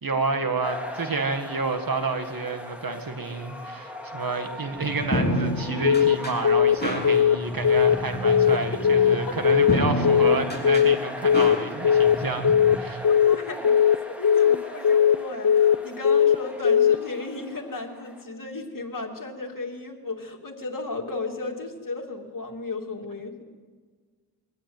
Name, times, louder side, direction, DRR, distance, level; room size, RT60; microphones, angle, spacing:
voice 1, 0.0-13.0, right 3 dB, 60° right, 7 dB, 1.9 m, -29 dB
sound 1, 0.6-18.2, equal, 5° right, 3.0 m, -39 dB
sound 2, 4.7-12.8, left 1 dB, 25° left, 6.8 m, -30 dB
Telephone, 5.8-6.2 6.4-6.8 7.0-7.4 7.6-8.0 8.2-8.6 8.8-9.2 9.4-9.8 10.0-10.4 10.6-11.0 11.2-11.6 11.8-12.2 12.4-12.8 13.0-13.4 13.6-14.0 14.2-14.6 14.8-15.2 15.4-15.8 16.0-16.4 16.6-17.0, left 8 dB, 75° left, 0.8 m, -18 dB
voice 2, 13.0-13.9 14.2-23.4, left 3 dB, 55° left, 2 dB, 2.7 m, -34 dB
23.0 x 14.5 x 9.4 m, 1.5 s
wide cardioid pair, 75°, 39 cm